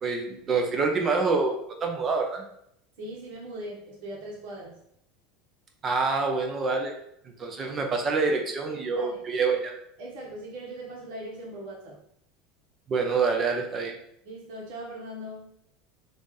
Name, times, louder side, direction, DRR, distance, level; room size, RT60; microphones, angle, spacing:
voice 1, 0.0-1.6 1.8-2.4 5.8-6.9 7.4-9.7 12.9-13.9, right 4 dB, 30° right, 3 dB, 0.7 m, -26 dB
voice 2, 3.0-4.8 8.6-9.2 10.0-12.0 14.2-15.5, right 1 dB, 70° right, -3 dB, 1.3 m, -40 dB
3.2 x 2.7 x 3.7 m, 0.74 s
supercardioid pair, 135°, 0 cm